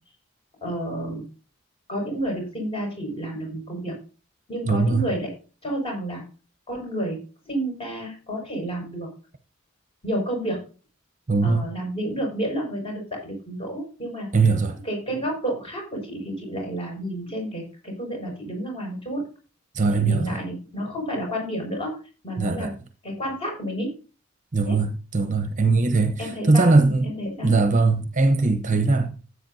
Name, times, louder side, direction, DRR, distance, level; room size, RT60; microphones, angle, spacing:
voice 1, 0.6-1.3 1.9-4.0 4.5-5.3 5.6-6.2 6.7-9.1 10.0-10.6 11.4-14.3 14.8-19.2 19.9-22.0 22.2-22.7 23.0-23.9 24.7-24.8 26.2-26.7 27.0-27.5, right 1 dB, 25° left, 6.0 m, -30 dB
voice 2, 4.7-5.0 11.3-11.7 14.3-14.8 19.7-20.4 22.4-22.7 24.5-27.1 27.4-29.2, right 3 dB, 35° right, 0.9 m, -20 dB
15.0 x 8.3 x 2.7 m
head